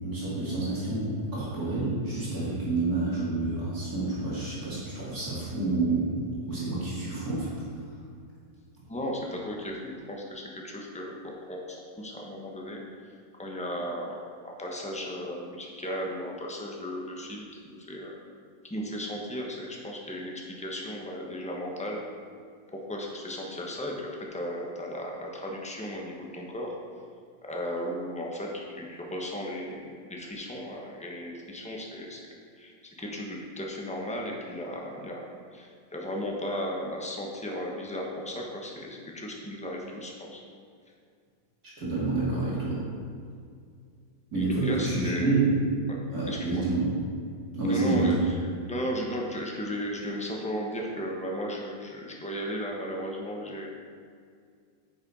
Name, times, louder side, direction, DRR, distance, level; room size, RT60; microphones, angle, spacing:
voice 1, 0.0-7.5 41.8-42.8 44.3-45.6 46.1-46.9 47.5-48.2, right 3 dB, 55° right, -8 dB, 2.6 m, -28 dB
voice 2, 8.9-12.8 13.4-18.1 18.7-22.0 22.7-26.7 27.4-32.2 32.6-40.4 44.4-45.4 46.3-46.6 47.7-48.3 48.7-53.7, equal, 5° left, -1 dB, 0.7 m, -35 dB
9.4 x 6.5 x 4.1 m, 2.2 s
omnidirectional pair, 1.9 m